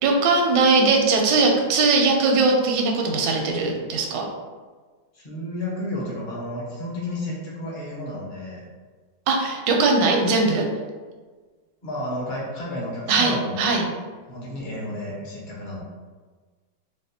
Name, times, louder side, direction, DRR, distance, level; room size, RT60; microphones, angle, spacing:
voice 1, 0.0-4.3 9.3-10.7 13.1-13.8, right 3 dB, 85° right, 1 dB, 1.2 m, -20 dB
voice 2, 5.1-8.6 11.8-13.6 14.3-15.8, left 1 dB, 35° left, -5 dB, 0.9 m, -32 dB
4.1 x 2.3 x 2.7 m, 1.4 s
omnidirectional pair, 1.9 m